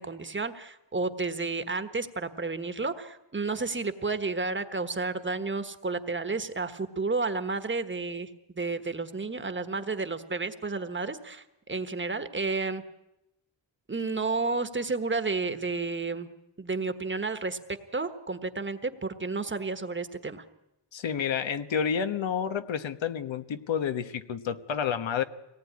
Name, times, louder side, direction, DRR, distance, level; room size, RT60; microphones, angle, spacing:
voice 1, 0.0-12.8 13.9-16.3 16.6-20.4, right 3 dB, 25° right, 9 dB, 1.3 m, -31 dB
voice 2, 20.9-25.2, left 7 dB, 85° left, 9 dB, 1.3 m, -30 dB
24.5 x 18.5 x 9.7 m, 0.89 s
wide cardioid pair, 140°, 45 cm